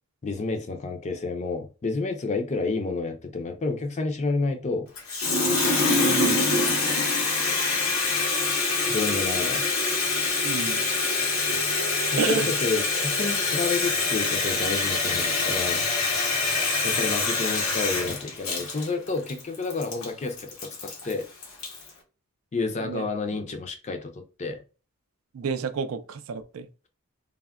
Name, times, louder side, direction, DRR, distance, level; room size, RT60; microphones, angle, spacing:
voice 1, 0.2-4.9 8.9-9.7 12.1-15.9 16.8-21.2 22.5-24.6, left 3 dB, 35° left, 0.4 m, -30 dB
Water tap faucet, 5.0-21.9, left 3 dB, 85° left, 0.7 m, -25 dB
voice 2, 6.0-6.5 10.4-10.8 12.2-12.5 22.8-23.1 25.3-26.7, right 5 dB, 75° right, 0.3 m, -30 dB
3.3 x 2.1 x 2.3 m
head